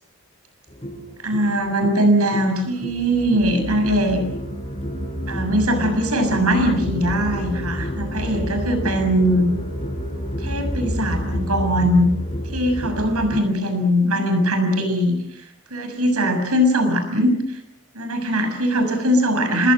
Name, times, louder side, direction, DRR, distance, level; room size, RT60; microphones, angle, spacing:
sound 1, 0.7-13.4, equal, 25° left, 4.7 m, -29 dB
voice 1, 1.2-4.2 5.3-9.5 10.4-12.1 12.5-15.4 15.7-17.6 17.9-19.7, equal, 85° right, 7 dB, 7.1 m, -20 dB
27.5 x 21.5 x 7.8 m, 0.74 s
head